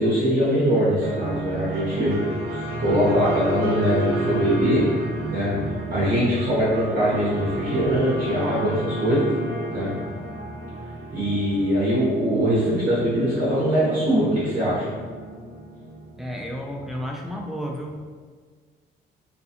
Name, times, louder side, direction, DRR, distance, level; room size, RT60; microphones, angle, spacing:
voice 1, 0.0-2.2 2.5-4.8 5.3-5.5 5.9-9.3 9.7-9.9 11.1-14.8, equal, 45° right, -8 dB, 0.8 m, -22 dB
sound 1, 1.0-17.3, right 2 dB, 75° right, 0.5 m, -32 dB
voice 2, 16.2-18.1, equal, ahead, 0 dB, 0.3 m, -32 dB
2.4 x 2.2 x 2.7 m, 1.6 s
cardioid pair, 90°, 20 cm